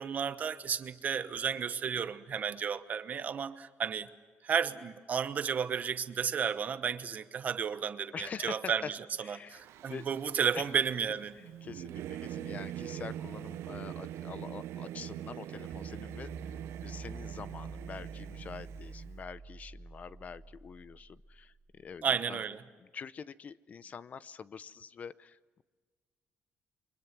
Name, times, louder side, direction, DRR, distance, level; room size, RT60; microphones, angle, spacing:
voice 1, 0.0-4.1 4.4-9.0 9.3-11.4 22.0-22.6, right 7 dB, 40° right, 1.1 m, -33 dB
voice 2, 8.1-8.9 9.2-10.1 10.5-10.7 11.6-22.4 22.8-25.6, left 6 dB, 35° left, 0.7 m, -45 dB
Singing / Musical instrument, 9.6-19.1, right 12 dB, 90° right, 0.7 m, -43 dB
sound 1, 15.7-22.0, right 4 dB, 15° right, 0.7 m, -47 dB
29.5 x 24.0 x 6.0 m
cardioid pair, 165°, 4 cm